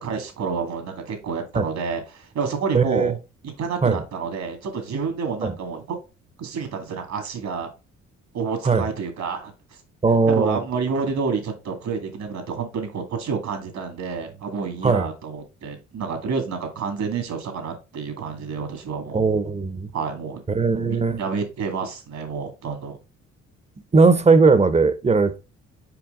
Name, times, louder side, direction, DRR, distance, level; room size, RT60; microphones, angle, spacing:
voice 1, 0.0-3.2 3.6-6.0 6.4-7.7 8.3-9.5 10.3-19.2 19.9-20.4 20.7-23.0, right 5 dB, 65° right, 2.2 m, -29 dB
voice 2, 2.7-3.1 3.8-4.0 5.4-5.5 8.6-8.9 10.0-10.6 14.8-15.1 19.1-19.9 20.5-21.2 23.9-25.4, right 4 dB, 20° right, 0.8 m, -18 dB
5.8 x 4.9 x 3.7 m
cardioid pair, 90°, 30 cm